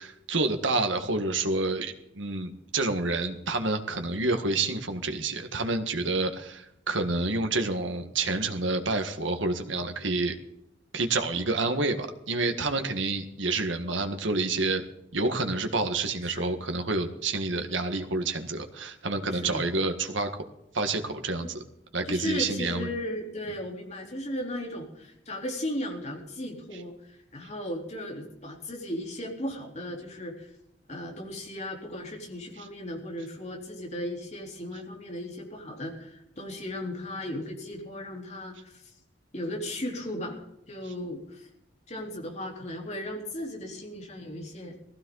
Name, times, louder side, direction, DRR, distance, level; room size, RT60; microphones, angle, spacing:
voice 1, 0.0-10.4 10.9-14.8 15.1-20.4 20.7-21.6 21.9-22.9, right 3 dB, 80° right, 6 dB, 1.7 m, -28 dB
voice 2, 19.3-19.7 21.4-21.5 22.1-30.5 30.9-38.9 39.3-41.5 41.9-44.7, left 1 dB, 35° left, 0 dB, 3.8 m, -36 dB
19.0 x 15.5 x 4.0 m, 0.80 s
head